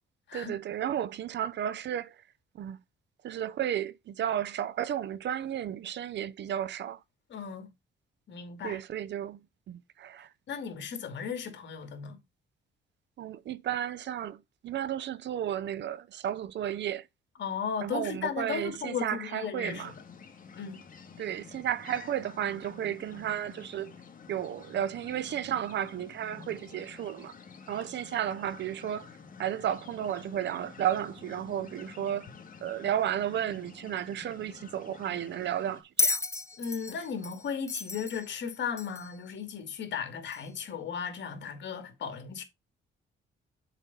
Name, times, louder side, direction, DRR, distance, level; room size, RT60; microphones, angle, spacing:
voice 1, 0.3-2.2 2.5-2.8 3.2-7.0 8.6-10.3 13.2-17.1 17.8-20.0 21.2-23.9 24.3-27.3 27.7-29.1 29.4-32.3 32.6-36.2, right 10 dB, 65° right, 0.7 m, -33 dB
voice 2, 7.3-7.7 8.3-8.8 10.5-12.2 17.4-19.8 20.6-20.8 36.6-42.4, left 7 dB, 65° left, 2.4 m, -36 dB
sound 1, 19.6-35.8, left 6 dB, 45° left, 2.2 m, -50 dB
Bell, 36.0-39.2 40.3-40.4, left 3 dB, 15° left, 0.6 m, -32 dB
7.4 x 4.0 x 5.4 m
cardioid pair, 90°, 20 cm